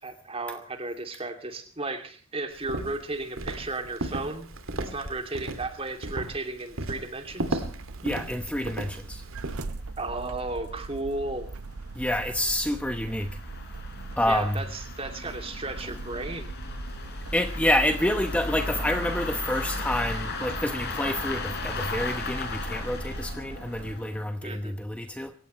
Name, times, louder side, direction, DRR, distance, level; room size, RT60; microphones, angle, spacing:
voice 1, 0.0-4.5 4.8-7.6 10.0-11.5 14.3-16.5 24.4-24.8, right 2 dB, 25° right, 6 dB, 2.7 m, -34 dB
Walk footsteps, 2.6-9.6, right 2 dB, 65° right, 2.6 m, -35 dB
sound 1, 7.5-24.0, right 3 dB, 85° right, 0.8 m, -42 dB
sound 2, 7.9-8.0 8.2-8.3 8.8-8.9 9.2-9.3 9.9-24.3, left 2 dB, 50° left, 5.4 m, -36 dB
voice 2, 8.0-9.2 11.9-13.4 14.2-14.6 17.0-25.3, left 1 dB, 5° left, 7 dB, 0.9 m, -28 dB
27.0 x 16.5 x 3.2 m, 0.43 s
head